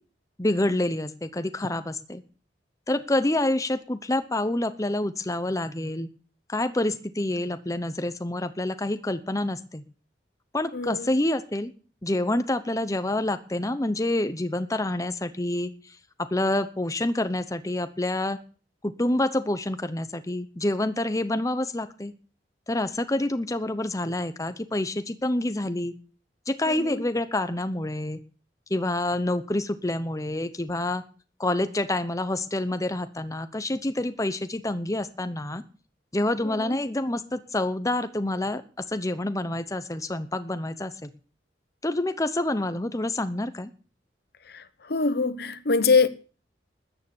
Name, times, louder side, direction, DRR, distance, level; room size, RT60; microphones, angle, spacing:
voice 1, 0.4-2.2 2.9-6.1 6.5-9.8 10.5-11.7 12.0-18.4 18.8-22.1 22.7-25.9 26.5-28.2 28.7-31.0 31.4-35.6 36.1-38.6 38.9-41.1 41.8-43.7, left 1 dB, 20° left, 0.9 m, -27 dB
voice 2, 10.7-11.1 26.7-27.0 36.4-36.8 44.5-46.1, left 4 dB, 60° left, 0.9 m, -24 dB
13.5 x 9.2 x 7.1 m
head